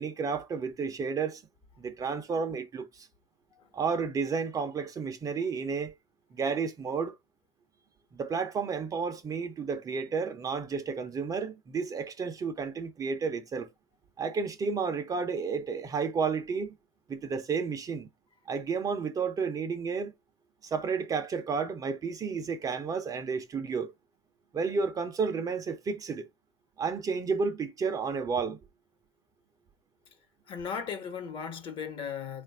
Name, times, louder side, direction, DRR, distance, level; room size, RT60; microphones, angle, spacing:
voice 1, 0.0-1.4 1.8-3.1 3.7-5.9 6.3-7.2 8.1-13.7 14.2-16.7 17.1-18.1 18.5-20.1 20.6-23.9 24.5-26.3 26.8-28.6, right 5 dB, 30° right, 0.7 m, -31 dB
voice 2, 30.5-32.4, left 7 dB, 45° left, 1.2 m, -37 dB
3.9 x 2.5 x 3.4 m
supercardioid pair, 100°, 13 cm